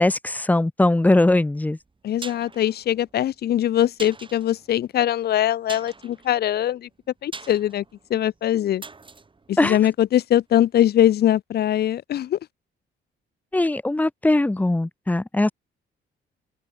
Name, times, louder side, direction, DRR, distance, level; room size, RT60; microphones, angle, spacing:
voice 1, 0.0-1.8 9.6-9.8 13.5-15.5, left 2 dB, 10° left, 0.6 m, -20 dB
sound 1, 1.8-10.7 11.0-11.1, right 4 dB, 25° right, 2.7 m, -44 dB
voice 2, 2.0-6.9 7.2-7.8 8.1-8.8 9.5-12.4, left 11 dB, 55° left, 0.5 m, -22 dB
open air
cardioid pair, 90°, 20 cm